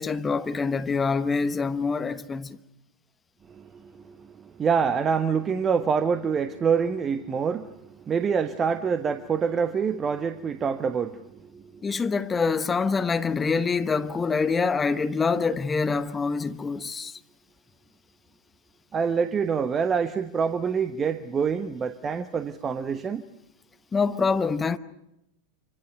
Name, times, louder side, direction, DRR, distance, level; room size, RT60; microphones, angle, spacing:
voice 1, 0.0-2.6 11.8-17.2 23.9-24.8, left 4 dB, 15° left, 1.0 m, -25 dB
voice 2, 3.5-7.7 8.1-11.8 18.9-23.3, right 6 dB, 20° right, 1.1 m, -26 dB
27.0 x 25.5 x 6.0 m
figure-of-eight pair, 90°, 0 cm